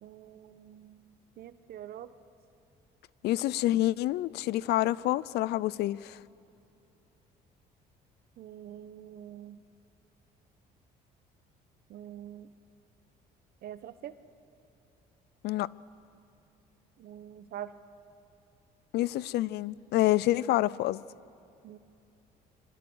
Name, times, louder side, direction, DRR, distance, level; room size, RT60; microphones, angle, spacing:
voice 1, 0.0-1.0 1.4-2.1 8.4-9.6 11.9-12.5 13.6-14.1 17.0-17.7 21.6-21.8, right 11 dB, 65° right, 1.2 m, -45 dB
voice 2, 3.2-6.2 15.4-15.7 18.9-21.0, left 15 dB, 75° left, 0.6 m, -27 dB
26.0 x 24.5 x 8.0 m
cardioid pair, 110°, 17 cm